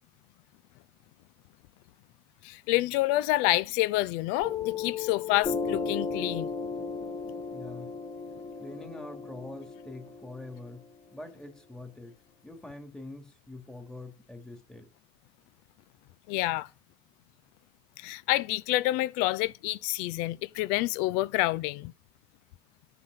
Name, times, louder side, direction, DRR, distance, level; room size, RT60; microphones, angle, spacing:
voice 1, 2.4-6.5 16.3-16.7 18.0-21.9, left 18 dB, 80° left, 0.4 m, -28 dB
Piano, 4.4-11.5, left 5 dB, 35° left, 1.4 m, -35 dB
voice 2, 7.5-7.9 8.6-10.9 11.1-12.1 12.4-14.9, left 2 dB, 5° left, 2.4 m, -44 dB
10.0 x 6.0 x 7.8 m
cardioid pair, 130°, 13 cm